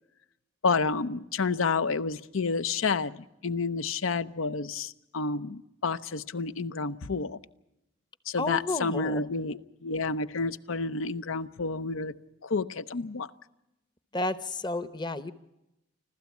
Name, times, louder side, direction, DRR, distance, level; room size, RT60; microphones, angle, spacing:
voice 1, 0.6-7.4 8.3-12.1 12.4-13.3, left 4 dB, 85° left, 14 dB, 0.7 m, -30 dB
voice 2, 8.4-9.2 14.1-15.3, left 2 dB, 20° left, 13 dB, 0.8 m, -31 dB
25.5 x 15.5 x 8.3 m, 0.91 s
head